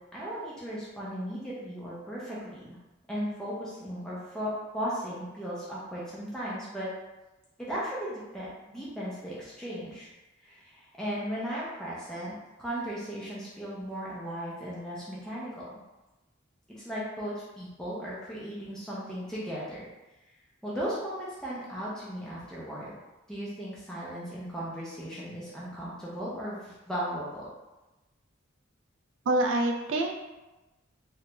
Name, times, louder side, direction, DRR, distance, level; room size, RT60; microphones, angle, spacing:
voice 1, 0.1-2.8 3.1-6.9 7.6-10.1 10.4-12.3 12.6-15.7 16.8-19.9 20.6-22.9 23.3-27.4, equal, 5° left, -8 dB, 0.5 m, -36 dB
voice 2, 29.3-30.1, right 2 dB, 65° right, 2 dB, 0.3 m, -26 dB
3.1 x 2.3 x 2.9 m, 1.1 s
head